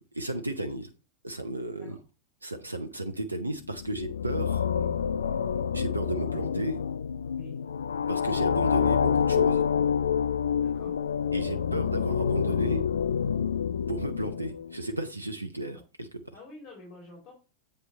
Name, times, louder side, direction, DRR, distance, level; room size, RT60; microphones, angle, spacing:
voice 1, 0.1-0.9 1.2-2.0 2.4-4.6 5.7-6.8 8.1-9.7 11.3-12.8 13.9-16.3, right 1 dB, 85° right, 8 dB, 0.7 m, -33 dB
sound 1, 3.6-14.9, left 7 dB, 70° left, 0.3 m, -27 dB
voice 2, 10.6-10.9 16.3-17.3, left 2 dB, 35° left, -1 dB, 3.4 m, -48 dB
8.1 x 5.4 x 4.2 m, 0.31 s
figure-of-eight pair, 90°, 0 cm